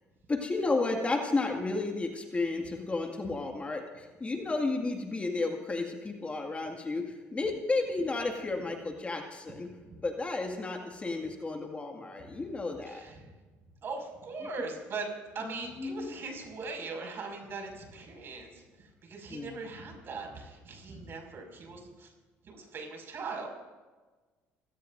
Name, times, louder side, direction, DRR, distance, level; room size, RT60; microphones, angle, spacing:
voice 1, 0.3-9.7 10.0-13.0 15.5-16.1 19.3-19.6, left 3 dB, 25° left, 2 dB, 2.0 m, -32 dB
voice 2, 12.9-13.3 13.8-22.1 22.4-23.5, right 3 dB, 50° right, 2 dB, 5.8 m, -40 dB
29.5 x 17.0 x 2.6 m, 1.3 s
supercardioid pair, 85°, 5 cm